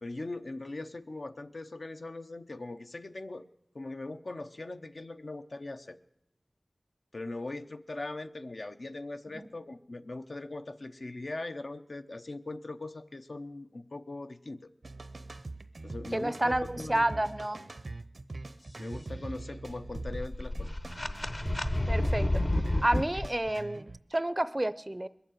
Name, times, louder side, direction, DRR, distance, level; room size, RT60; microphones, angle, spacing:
voice 1, 0.0-3.4 3.7-6.0 7.1-14.7 15.8-17.2 18.8-20.7, left 2 dB, 65° left, 7 dB, 0.8 m, -40 dB
sound 1, 14.8-24.0, right 2 dB, 70° right, 0.7 m, -43 dB
voice 2, 16.1-17.6 21.9-22.3 22.8-25.1, right 1 dB, 25° right, 15 dB, 0.5 m, -30 dB
sound 2, 19.7-23.3, left 1 dB, 40° left, 1.0 m, -30 dB
21.0 x 7.2 x 9.1 m, 0.80 s
wide cardioid pair, 55°, 0 cm